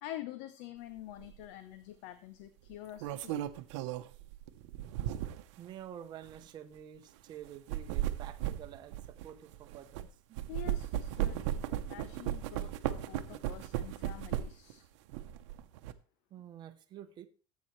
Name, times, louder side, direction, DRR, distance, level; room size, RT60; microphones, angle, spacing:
voice 1, 0.0-3.4 10.5-14.8, left 13 dB, 55° left, 11 dB, 0.8 m, -47 dB
sound 1, 1.2-1.4 2.7-5.5 6.2-6.4 7.5-10.1 10.4-14.7 15.1-15.9, right 12 dB, 75° right, 0.9 m, -36 dB
voice 2, 5.6-10.5 16.3-17.3, right 10 dB, 30° right, 7 dB, 0.9 m, -49 dB
14.5 x 8.3 x 3.2 m, 0.37 s
cardioid pair, 170°, 15 cm